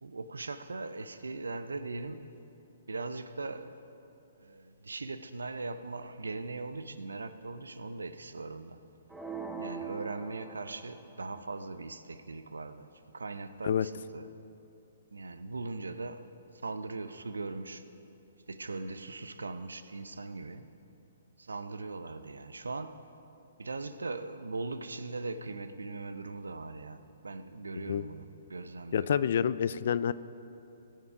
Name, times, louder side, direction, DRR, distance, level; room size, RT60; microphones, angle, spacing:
voice 1, 0.0-2.4 2.9-3.7 4.4-8.8 9.6-12.9 13.1-14.3 15.1-16.3 16.6-17.8 18.5-20.6 21.4-23.0 23.6-29.1, right 3 dB, 85° right, 0.6 m, -40 dB
sound 1, 9.1-11.2, right 5 dB, 5° right, 0.9 m, -42 dB
voice 2, 28.9-30.1, left 8 dB, 60° left, 0.4 m, -28 dB
18.0 x 7.3 x 4.8 m
hypercardioid pair, 130°, 0 cm